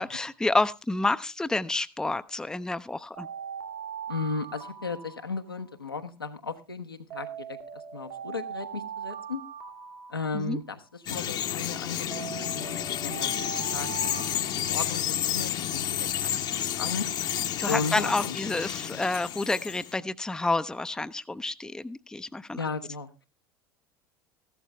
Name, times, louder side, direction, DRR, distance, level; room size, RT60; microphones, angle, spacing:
voice 1, 0.0-3.3 10.3-10.6 17.6-22.6, left 2 dB, 5° left, 13 dB, 0.6 m, -29 dB
Alarm, 3.1-5.8 7.1-10.8 12.1-15.3, right 8 dB, 75° right, 2.6 m, -40 dB
voice 2, 4.1-9.4 10.1-13.3 13.7-17.1 17.6-18.3 22.5-23.1, left 4 dB, 85° left, 5 dB, 1.1 m, -35 dB
Bird vocalization bird call bird song, 11.1-20.0, left 10 dB, 40° left, 0.9 m, -31 dB
15.0 x 12.0 x 3.3 m, 0.28 s
figure-of-eight pair, 70°, 12 cm